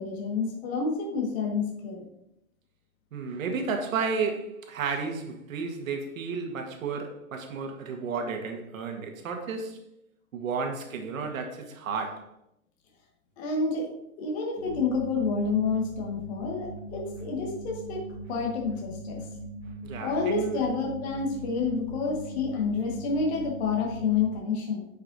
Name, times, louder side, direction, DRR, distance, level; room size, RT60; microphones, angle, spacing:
voice 1, 0.0-2.1 13.4-13.9 14.2-18.0 18.3-19.2 20.0-24.9, left 4 dB, 45° left, 1.7 m, -29 dB
voice 2, 3.1-9.8 10.3-12.3 19.8-20.6, right 5 dB, 65° right, 1.7 m, -32 dB
sound 1, 14.6-24.4, right 1 dB, 30° left, 1.2 m, -40 dB
9.9 x 5.5 x 2.7 m
hypercardioid pair, 150°, 43 cm